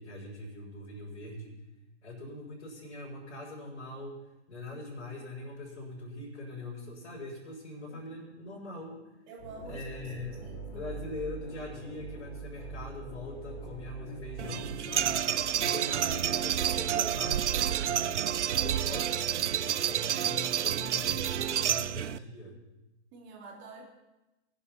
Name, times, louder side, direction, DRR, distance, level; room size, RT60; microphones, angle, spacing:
voice 1, 0.0-1.6 2.0-4.2 4.5-9.0 9.7-10.4 10.7-15.3 15.6-18.3 18.6-22.6, left 2 dB, 75° left, -6 dB, 6.6 m, -42 dB
voice 2, 9.3-9.9 10.1-11.0 23.1-23.8, right 3 dB, 30° right, -1 dB, 3.4 m, -49 dB
sound 1, 9.4-15.7, right 3 dB, 55° left, 5.1 m, -43 dB
sound 2, 14.4-22.2, right 10 dB, 80° right, 0.5 m, -29 dB
21.0 x 10.5 x 4.5 m, 1.0 s
hypercardioid pair, 125°, 34 cm